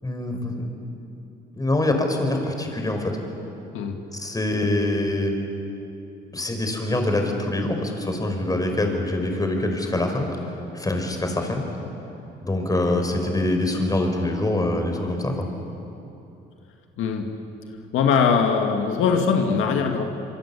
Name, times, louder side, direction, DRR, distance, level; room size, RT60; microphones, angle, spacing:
voice 1, 0.0-0.7 1.6-3.2 4.1-5.3 6.3-10.3 10.7-11.7 12.4-15.5, left 1 dB, 20° left, 4 dB, 4.9 m, -24 dB
voice 2, 17.0-17.3 17.9-20.0, left 6 dB, 90° left, 4 dB, 2.1 m, -21 dB
26.5 x 23.5 x 8.5 m, 2.9 s
cardioid pair, 90°, 20 cm